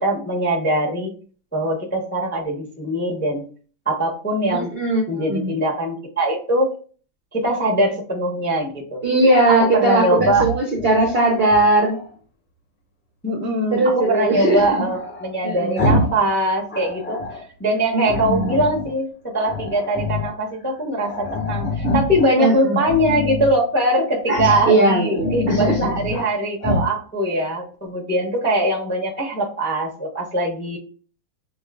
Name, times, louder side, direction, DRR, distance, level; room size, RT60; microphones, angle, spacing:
voice 1, 0.0-1.1 1.5-3.4 3.8-4.7 5.1-6.7 7.3-9.0 9.6-10.4 13.2-17.2 17.6-19.1 19.3-30.8, right 1 dB, 15° left, -3 dB, 0.3 m, -22 dB
voice 2, 4.5-5.5 9.0-12.0 13.7-14.8 15.4-15.8 17.9-18.6 22.4-22.8 24.3-25.9, right 2 dB, 70° right, 0 dB, 0.5 m, -19 dB
Growling, 10.1-12.1 14.5-16.2 16.5-17.4 18.0-18.9 19.4-20.4 20.7-20.8 21.0-22.3 22.8-23.6 24.3-24.7 25.1-26.3 26.6-26.9, left 2 dB, 35° left, 1.7 m, -26 dB
5.4 x 2.4 x 2.3 m, 0.40 s
omnidirectional pair, 2.1 m